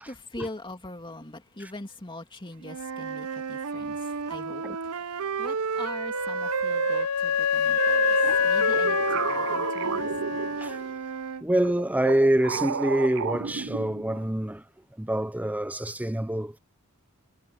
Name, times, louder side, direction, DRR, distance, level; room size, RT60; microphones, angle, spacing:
voice 1, 0.0-8.2 8.4-10.1, left 2 dB, 20° left, 2.6 m, -42 dB
Wind instrument woodwind instrument, 2.6-7.1 7.8-11.4, right 6 dB, 90° right, 0.8 m, -31 dB
Wind instrument woodwind instrument 2, 6.1-10.8, left 8 dB, 85° left, 0.5 m, -26 dB
sound 1, 8.2-11.0 11.6-14.3, right 6 dB, 60° right, 0.5 m, -33 dB
voice 2, 11.4-14.6 15.0-16.6, right 1 dB, 5° right, 0.7 m, -26 dB
head